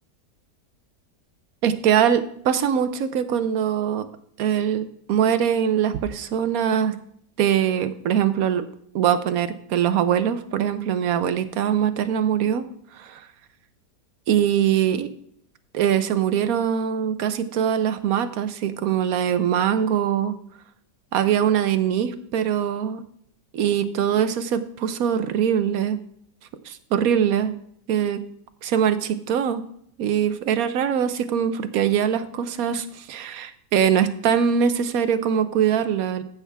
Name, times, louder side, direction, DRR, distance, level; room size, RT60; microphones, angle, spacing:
voice 1, 1.6-4.1 4.4-7.0 7.4-8.7 8.9-12.6 13.0-13.2 14.3-15.1 15.7-20.3 21.1-23.0 23.5-26.0 26.7-27.6 27.9-28.2 28.6-29.6 30.0-36.2, right 8 dB, 65° right, 11 dB, 1.2 m, -22 dB
15.0 x 6.0 x 3.5 m, 0.67 s
omnidirectional pair, 1.8 m